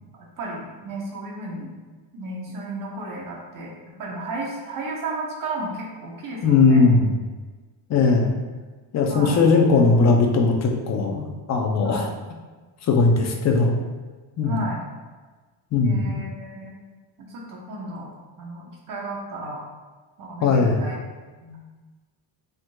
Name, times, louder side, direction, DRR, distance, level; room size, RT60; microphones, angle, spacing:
voice 1, 0.1-1.7 2.1-6.9 9.1-9.4 11.8-12.1 14.4-14.9 15.8-16.8 17.2-18.1 18.4-19.7 20.2-21.0 21.4-21.6, right 2 dB, 45° right, -2 dB, 0.9 m, -33 dB
voice 2, 6.4-7.2 7.9-8.3 8.9-12.0 12.8-13.8 14.4-14.6 15.7-16.2 20.4-20.8, left 4 dB, 35° left, 2 dB, 0.5 m, -19 dB
5.1 x 3.7 x 2.2 m, 1.3 s
cardioid pair, 175°, 48 cm